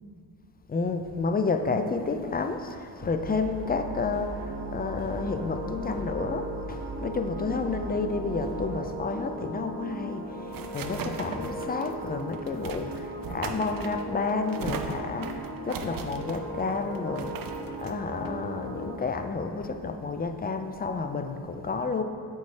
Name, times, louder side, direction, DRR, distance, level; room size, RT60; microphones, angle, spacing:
voice 1, 0.7-17.3 17.8-22.0, left 4 dB, 25° left, 6 dB, 0.4 m, -30 dB
sound 1, 3.0-8.8, right 2 dB, 85° right, 0.9 m, -40 dB
sound 2, 3.5-18.9, right 1 dB, 70° right, 1.3 m, -38 dB
sound 3, 9.9-19.2, right 5 dB, 55° right, 0.6 m, -39 dB
8.0 x 4.3 x 3.2 m, 2.3 s
cardioid pair, 70°, 42 cm